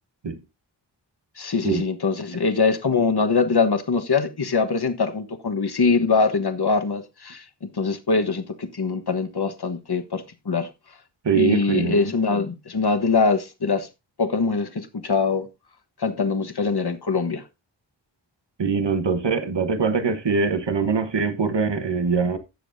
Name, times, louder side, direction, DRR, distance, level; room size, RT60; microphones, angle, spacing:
voice 1, 1.4-10.7 11.3-13.9 14.2-15.5 16.0-17.4, left 4 dB, 60° left, 1.3 m, -23 dB
voice 2, 11.2-12.0 18.6-22.4, right 5 dB, 70° right, 1.3 m, -23 dB
17.0 x 7.0 x 2.7 m
wide cardioid pair, 55°, 44 cm